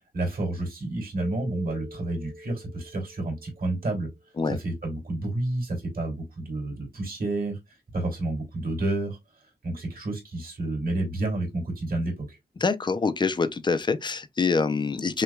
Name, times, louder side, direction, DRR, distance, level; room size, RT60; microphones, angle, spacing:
voice 1, 0.1-4.1 4.4-7.6 7.9-9.2 9.6-12.4, right 2 dB, 60° right, 2.6 m, -30 dB
Keyboard (musical), 1.2-4.4, left 1 dB, 20° right, 0.8 m, -46 dB
voice 2, 12.6-15.2, left 4 dB, 25° left, 0.4 m, -25 dB
6.0 x 2.3 x 2.2 m
wide cardioid pair, 180°, 17 cm